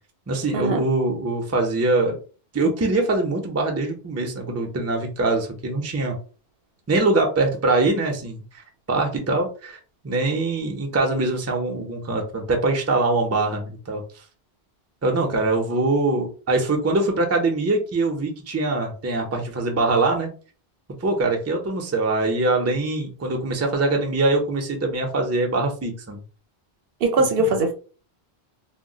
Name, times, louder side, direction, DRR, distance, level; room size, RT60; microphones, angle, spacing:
voice 1, 0.3-2.2 2.5-6.2 6.9-8.4 8.9-9.8 10.0-14.0 15.0-20.3 21.0-26.2, right 2 dB, 20° right, 0.4 m, -23 dB
voice 2, 27.0-27.7, right 2 dB, 70° right, 0.8 m, -20 dB
2.3 x 2.1 x 3.7 m
omnidirectional pair, 1.0 m